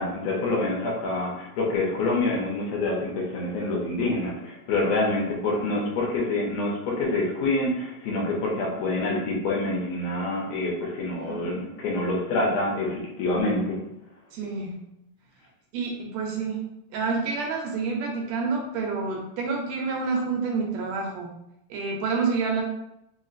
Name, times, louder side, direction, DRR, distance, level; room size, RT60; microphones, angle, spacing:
voice 1, 0.0-13.8, left 2 dB, 75° left, -2 dB, 1.8 m, -26 dB
voice 2, 11.2-11.6 14.3-14.8 15.7-16.6 16.9-21.3 21.7-22.6, right 4 dB, 75° right, -1 dB, 1.7 m, -28 dB
4.3 x 2.9 x 2.4 m, 0.83 s
omnidirectional pair, 3.4 m